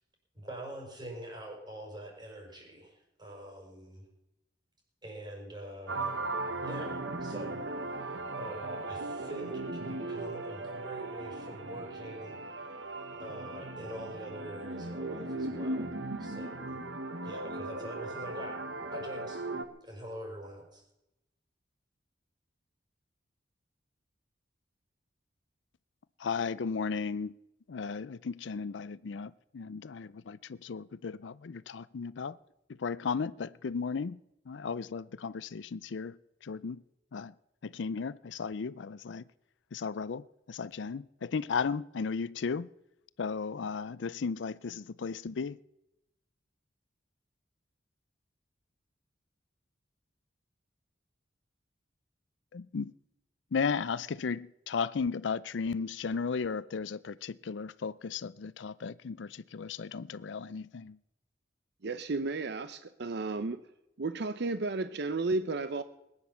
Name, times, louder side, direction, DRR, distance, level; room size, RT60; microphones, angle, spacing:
voice 1, 0.3-4.0 5.0-6.2 6.6-12.7 13.2-15.9 16.2-16.8 17.2-18.6 18.9-19.4 19.8-20.8, right 1 dB, 25° right, 5.2 m, -45 dB
sound 1, 5.9-19.7, right 2 dB, 80° right, 1.3 m, -37 dB
voice 2, 26.2-27.3 27.7-32.3 32.8-34.2 34.5-36.1 36.5-36.8 37.1-37.3 37.6-39.2 39.7-40.2 40.5-42.7 43.2-45.6 52.5-52.9 53.5-60.9, left 5 dB, 75° left, 0.5 m, -35 dB
voice 3, 61.8-63.6 64.0-65.8, right 3 dB, 65° right, 0.7 m, -33 dB
20.0 x 9.7 x 7.0 m
head